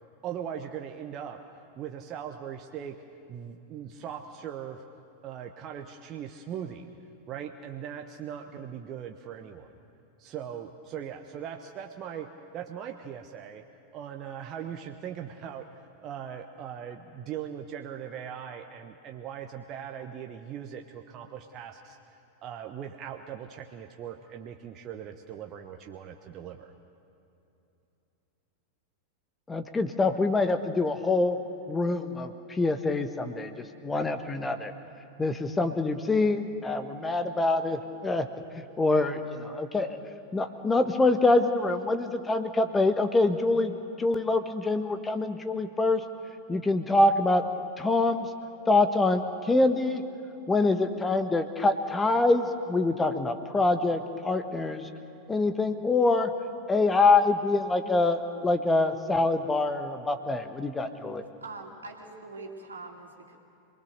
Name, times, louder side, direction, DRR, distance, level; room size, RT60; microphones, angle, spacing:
voice 1, 0.2-1.4 1.8-3.0 3.3-4.8 5.2-6.9 7.3-9.7 10.2-13.6 13.9-22.0 22.4-26.7, right 9 dB, 35° right, 4 dB, 1.1 m, -40 dB
voice 2, 29.5-31.4 31.7-33.5 33.8-34.7 35.2-38.3 38.8-40.0 40.3-46.0 46.5-47.4 47.8-48.3 48.7-50.0 50.5-54.9 55.3-56.3 56.7-61.2, left 2 dB, 15° left, 9 dB, 1.2 m, -25 dB
voice 3, 61.4-63.4, right 3 dB, 75° right, 2 dB, 2.6 m, -43 dB
26.5 x 20.0 x 6.7 m, 2.9 s
figure-of-eight pair, 90°, 0 cm